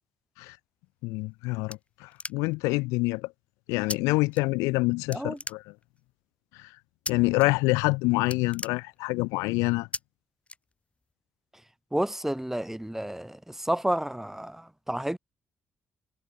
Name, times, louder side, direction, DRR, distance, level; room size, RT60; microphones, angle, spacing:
voice 1, 1.0-3.3 3.7-5.6 6.6-6.7 7.1-9.9, left 25 dB, 85° left, 0.8 m, -26 dB
sound 1, 1.0-2.7 3.9-4.0 4.3-4.8 5.1-6.1 7.1-7.5 7.8-7.9 8.2-9.4 9.9-10.0 10.5-11.1, left 3 dB, 25° left, 3.6 m, -38 dB
voice 2, 11.9-15.2, right 1 dB, 5° right, 3.8 m, -30 dB
hypercardioid pair, 50°, 5 cm